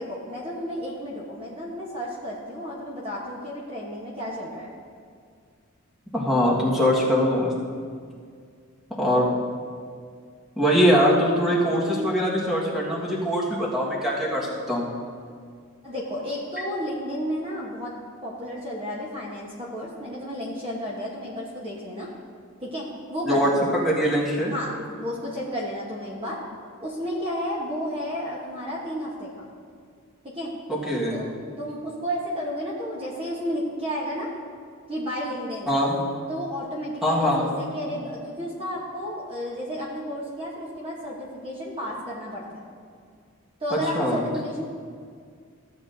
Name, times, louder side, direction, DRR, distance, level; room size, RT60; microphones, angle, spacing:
voice 1, 0.0-4.7 15.8-17.9 18.2-22.1 22.6-23.6 24.5-26.4 26.8-29.5 30.2-30.5 31.1-31.3 31.6-34.3 34.9-35.7 36.3-42.6 43.6-44.7, equal, 25° right, -4 dB, 1.1 m, -32 dB
voice 2, 6.1-7.5 8.9-9.3 10.6-14.9 23.2-24.5 30.7-31.1 35.7-36.0 37.0-37.4 43.7-44.2, equal, ahead, -6 dB, 1.6 m, -22 dB
15.0 x 8.3 x 2.7 m, 2.1 s
head